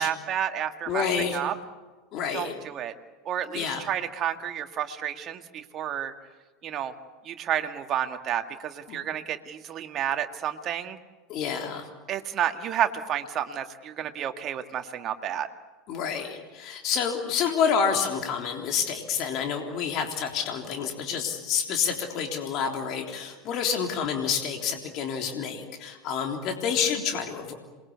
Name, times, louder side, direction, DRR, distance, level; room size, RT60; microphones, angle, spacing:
voice 1, 0.0-1.5 2.3-2.9 3.3-6.1 6.6-6.9 7.2-11.0 12.1-15.5, right 10 dB, 40° right, 6 dB, 2.1 m, -30 dB
voice 2, 0.9-1.4 2.1-2.5 3.5-3.8 8.9-9.0 11.3-11.9 15.9-27.5, left 7 dB, 50° left, 3 dB, 3.5 m, -28 dB
27.5 x 22.0 x 8.5 m, 1.3 s
hypercardioid pair, 80°, 0 cm